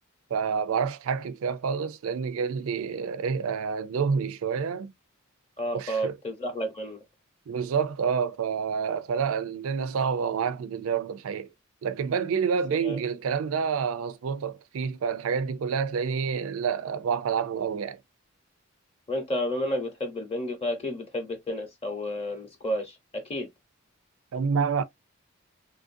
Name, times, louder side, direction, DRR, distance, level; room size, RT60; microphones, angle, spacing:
voice 1, 0.3-4.9 5.7-6.2 7.5-11.5 11.8-18.0 24.3-24.8, right 6 dB, 65° right, 0.4 m, -28 dB
voice 2, 5.6-7.0 12.8-13.0 19.1-23.5, equal, 30° left, 0.8 m, -31 dB
3.0 x 2.5 x 2.5 m
head